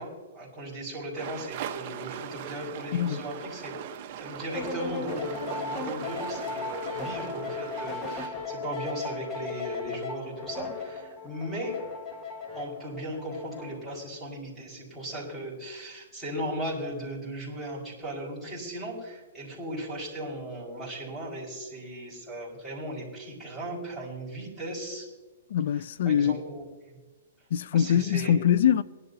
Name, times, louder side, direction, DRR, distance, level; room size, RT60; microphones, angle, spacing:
voice 1, 0.0-3.8 4.2-11.8 12.5-25.1 26.0-27.0 27.7-28.4, right 1 dB, 5° right, 5.0 m, -37 dB
sound 1, 1.1-8.3, right 9 dB, 45° right, 0.9 m, -40 dB
voice 2, 2.9-3.3 25.5-26.4 27.5-28.8, left 9 dB, 60° left, 0.5 m, -23 dB
sound 2, 4.5-13.9, left 4 dB, 20° left, 1.5 m, -36 dB
22.0 x 11.5 x 2.8 m
hypercardioid pair, 150°, 0 cm